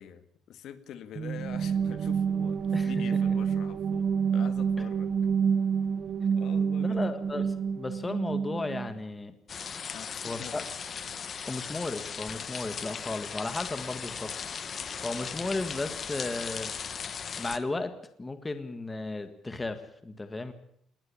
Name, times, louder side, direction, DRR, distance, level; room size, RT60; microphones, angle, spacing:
voice 1, 0.0-5.2 6.4-7.1 9.9-10.6, left 9 dB, 55° left, 12 dB, 1.8 m, -45 dB
sound 1, 1.2-8.9, right 6 dB, 35° right, 0.8 m, -28 dB
voice 2, 2.7-3.4 6.8-7.5 7.7-9.3 10.2-10.6 11.4-14.6 15.0-16.7 17.4-17.9 18.2-20.5, left 2 dB, 10° left, 10 dB, 1.7 m, -35 dB
sound 2, 9.5-17.6, left 6 dB, 30° left, 1.3 m, -37 dB
20.0 x 19.0 x 8.7 m, 0.70 s
cardioid pair, 180°, 0 cm